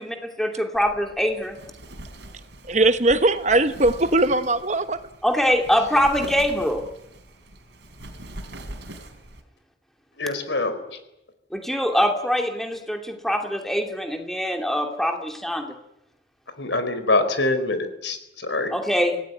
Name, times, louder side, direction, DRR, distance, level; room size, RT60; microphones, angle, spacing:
voice 1, 0.0-1.6 5.2-6.8 11.5-15.7 18.7-19.2, equal, ahead, 2.6 m, -23 dB
Wind, 0.7-9.4, right 1 dB, 70° right, 4.1 m, -42 dB
voice 2, 2.6-5.1, right 2 dB, 40° right, 1.1 m, -20 dB
voice 3, 10.2-11.0 16.6-18.7, left 2 dB, 80° left, 4.4 m, -24 dB
26.0 x 18.0 x 9.5 m
head